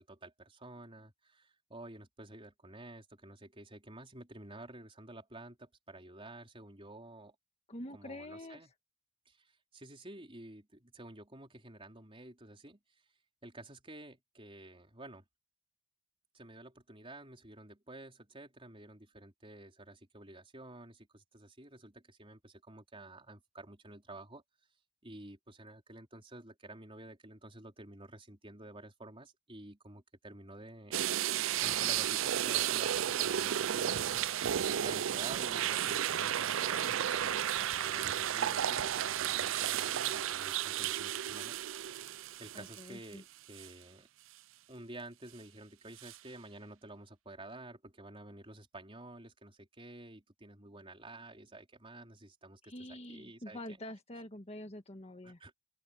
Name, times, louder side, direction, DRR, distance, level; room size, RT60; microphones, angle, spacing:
voice 1, 0.0-7.3 7.9-8.7 9.3-12.8 13.4-15.2 16.3-24.4 25.0-34.3 34.8-37.5 37.8-41.6 42.4-44.1 44.7-53.8 55.2-55.6, right 2 dB, 25° right, 4.4 m, -51 dB
voice 2, 7.7-8.7 42.5-43.2 52.6-55.4, left 1 dB, 30° left, 1.7 m, -46 dB
sound 1, 30.9-43.1 43.6-43.7 46.0-46.2, right 10 dB, 70° right, 0.5 m, -33 dB
open air
head